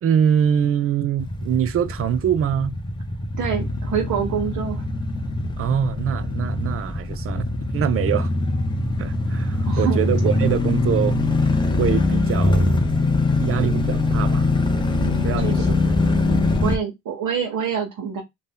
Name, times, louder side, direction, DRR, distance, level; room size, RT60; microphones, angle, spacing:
voice 1, 0.0-2.8 5.6-8.3 9.0-11.2 11.8-12.8 13.4-15.8 16.5-16.7, right 9 dB, 40° right, 0.4 m, -24 dB
sound 1, 1.2-16.8, left 2 dB, 15° left, 0.5 m, -22 dB
voice 2, 3.4-4.8 9.7-10.1 15.0-15.9 16.6-18.2, right 7 dB, 55° right, 0.9 m, -26 dB
2.7 x 2.2 x 3.5 m
cardioid pair, 105°, 37 cm